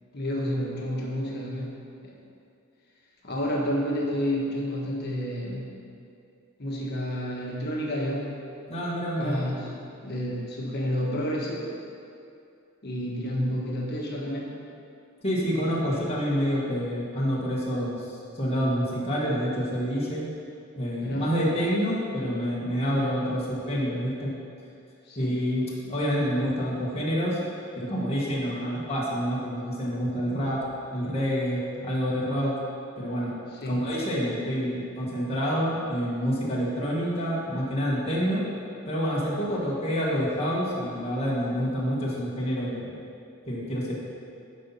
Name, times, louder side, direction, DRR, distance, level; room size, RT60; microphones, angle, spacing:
voice 1, 0.1-1.8 2.0-2.1 3.2-5.7 6.6-8.4 9.2-9.7 10.0-11.7 12.8-14.5 15.5-16.0 21.0-21.3 22.9-23.1 25.0-25.3 31.8-32.0 33.5-33.8 41.6-41.9, equal, 55° left, -3 dB, 1.4 m, -30 dB
voice 2, 8.7-9.4 15.2-20.2 20.8-24.3 25.2-27.4 27.7-30.6 30.9-32.5 33.0-33.4 33.7-38.4 38.9-42.9 43.5-43.9, equal, 30° left, -6 dB, 1.4 m, -27 dB
9.9 x 4.2 x 5.6 m, 2.5 s
head